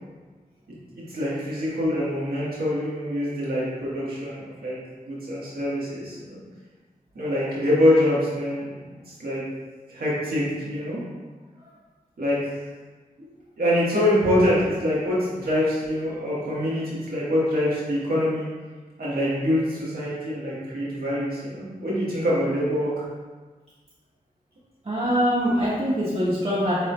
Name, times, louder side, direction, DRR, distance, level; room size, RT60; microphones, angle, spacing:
voice 1, 0.9-4.8 5.0-6.4 7.1-8.6 8.9-9.4 9.9-11.0 12.2-12.5 13.2-13.3 13.6-18.5 19.0-23.0, left 1 dB, 90° right, -8 dB, 1.4 m, -25 dB
voice 2, 24.8-26.8, equal, 45° right, -10 dB, 1.3 m, -23 dB
6.6 x 3.3 x 2.2 m, 1.4 s
cardioid pair, 50°, 15 cm